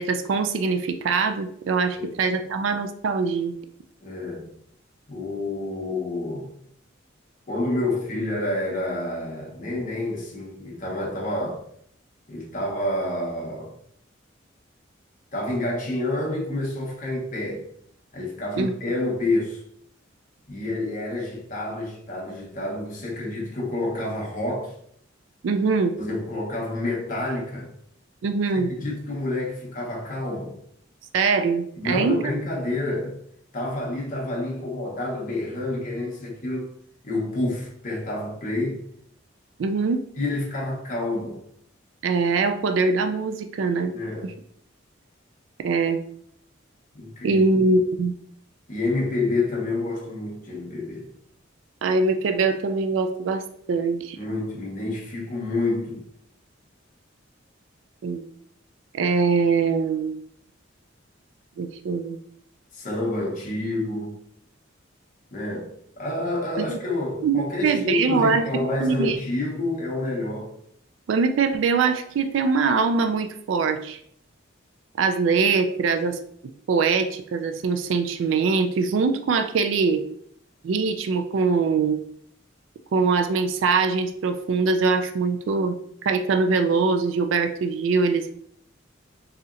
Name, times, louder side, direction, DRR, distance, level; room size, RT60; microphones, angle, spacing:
voice 1, 0.0-3.5 18.6-18.7 25.4-25.9 28.2-28.7 31.1-32.2 39.6-40.0 42.0-43.9 45.6-46.0 47.2-48.1 51.8-53.4 53.7-54.2 58.0-58.3 58.9-60.2 61.6-62.2 66.6-66.8 67.2-68.5 68.8-69.2 71.1-74.0 75.0-76.2 76.7-80.0 80.6-82.0 82.9-85.8 86.0-88.3, right 4 dB, 70° right, 0.3 m, -22 dB
voice 2, 1.9-2.4 4.0-4.5 5.1-6.5 7.5-11.6 12.3-13.7 15.3-17.7 18.1-19.6 20.5-24.8 26.0-27.7 28.5-30.6 31.8-33.2 33.5-36.7 37.0-38.8 40.2-41.4 43.9-44.3 46.9-47.4 48.7-51.1 54.1-56.1 62.7-64.2 65.3-70.5, left 2 dB, 45° left, 0.8 m, -28 dB
4.1 x 2.8 x 2.5 m
head